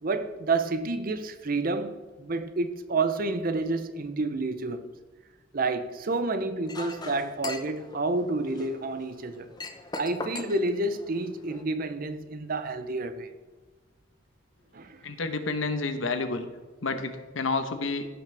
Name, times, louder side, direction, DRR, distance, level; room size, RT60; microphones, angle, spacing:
voice 1, 0.0-4.9 5.5-9.5 10.0-13.3 14.7-15.0, right 3 dB, 45° right, 0.7 m, -29 dB
Chink clink, 6.7-11.6, left 3 dB, 20° left, 0.8 m, -41 dB
voice 2, 15.0-16.5 16.8-18.1, left 3 dB, 80° left, 1.1 m, -29 dB
16.0 x 5.9 x 3.4 m
head